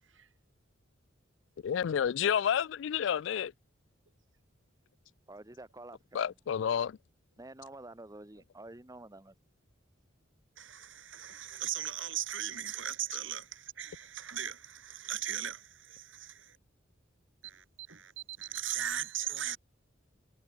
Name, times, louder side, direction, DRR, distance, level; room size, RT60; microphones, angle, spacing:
voice 1, 1.6-3.5 6.1-7.0, left 8 dB, 70° left, 0.3 m, -30 dB
voice 2, 5.3-6.2 7.4-9.3, right 2 dB, 20° right, 1.1 m, -49 dB
voice 3, 10.6-16.6 17.4-19.6, right 10 dB, 80° right, 5.4 m, -38 dB
head